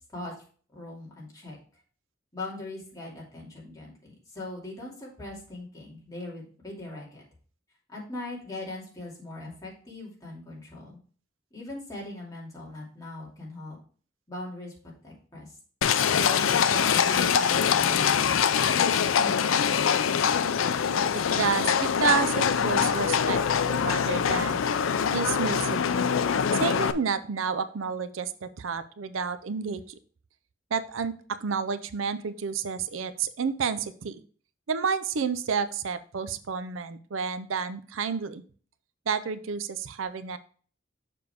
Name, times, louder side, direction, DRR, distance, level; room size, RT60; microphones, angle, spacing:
voice 1, 0.7-1.6 2.3-7.2 7.9-11.0 11.5-13.8 14.3-14.7 15.0-15.5 16.1-19.6, left 2 dB, 20° left, -4 dB, 2.6 m, -40 dB
Livestock farm animals working animals, 15.8-26.9, left 7 dB, 90° left, 0.5 m, -24 dB
voice 2, 21.3-24.6 25.1-25.9 26.5-29.8 30.7-31.1 31.4-34.2 34.7-38.4 39.1-40.4, right 6 dB, 85° right, 13 dB, 0.5 m, -30 dB
6.8 x 6.5 x 3.5 m, 0.43 s
head